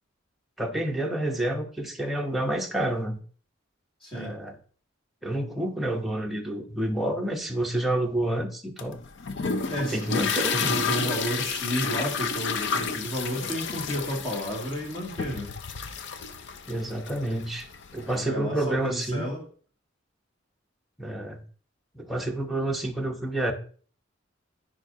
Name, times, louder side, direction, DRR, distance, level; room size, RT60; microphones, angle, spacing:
voice 1, 0.6-3.2 4.1-4.6 5.2-9.0 9.9-10.8 16.7-17.7 17.9-19.3 21.0-21.4 21.9-23.5, right 1 dB, ahead, 1 dB, 0.8 m, -29 dB
voice 2, 4.0-4.4 9.7-15.5 18.0-19.4, equal, 30° left, -2 dB, 2.2 m, -32 dB
sound 1, 8.8-18.2, left 5 dB, 60° left, 0.6 m, -31 dB
9.5 x 4.9 x 2.7 m, 0.43 s
head